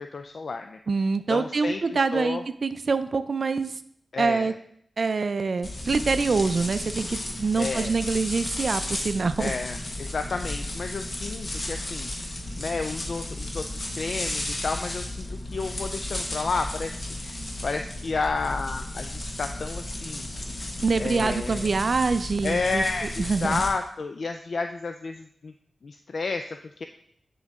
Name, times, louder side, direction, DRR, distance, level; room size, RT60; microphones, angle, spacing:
voice 1, 0.0-0.8 1.3-2.4 4.1-4.6 7.6-7.9 9.4-20.3 21.0-21.7 22.4-25.5 25.8-26.8, left 4 dB, 70° left, 6 dB, 0.3 m, -31 dB
voice 2, 0.9-3.7 4.2-4.5 5.0-9.5 20.8-22.8 23.2-23.6, right 4 dB, 60° right, 11 dB, 0.4 m, -25 dB
sound 1, 5.6-23.7, left 1 dB, 45° left, 1.1 m, -34 dB
9.4 x 3.9 x 3.5 m, 0.68 s
wide cardioid pair, 75°, 0 cm